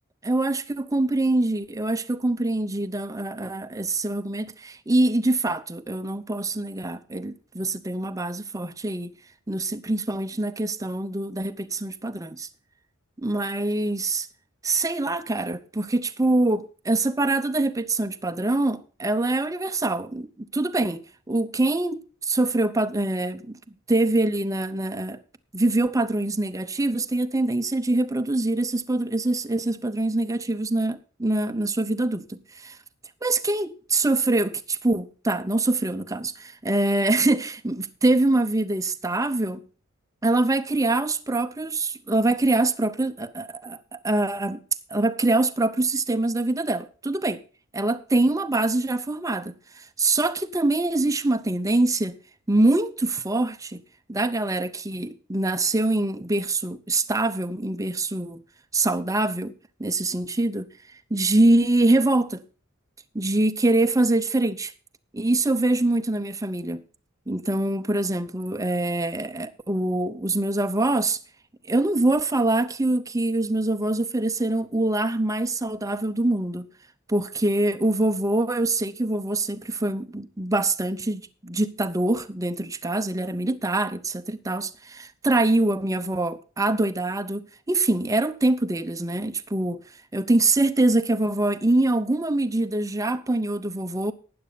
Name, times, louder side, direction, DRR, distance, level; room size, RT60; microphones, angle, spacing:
voice 1, 0.2-9.1 9.5-12.5 13.2-14.3 14.6-21.0 21.3-23.6 23.9-25.2 25.5-32.8 33.2-39.6 40.2-44.6 44.9-47.4 47.7-52.1 52.5-53.8 54.1-58.4 58.7-59.5 59.8-60.7 61.1-62.4 63.1-64.7 65.1-66.8 67.3-71.2 71.7-76.7 77.1-89.8 90.1-94.1, right 2 dB, 15° right, 0.7 m, -24 dB
12.5 x 9.6 x 4.0 m
head